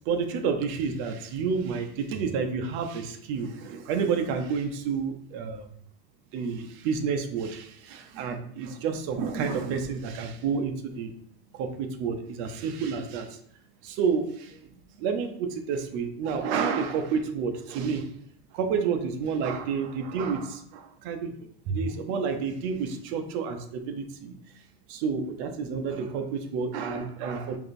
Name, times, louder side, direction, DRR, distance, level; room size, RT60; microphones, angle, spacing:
voice 1, 0.1-5.7 6.3-11.1 11.5-13.4 13.8-14.6 15.0-18.1 18.5-21.3 21.7-24.3 24.9-27.6, right 5 dB, 40° right, 6 dB, 0.5 m, -30 dB
4.7 x 2.6 x 2.6 m, 0.64 s
supercardioid pair, 145°, 33 cm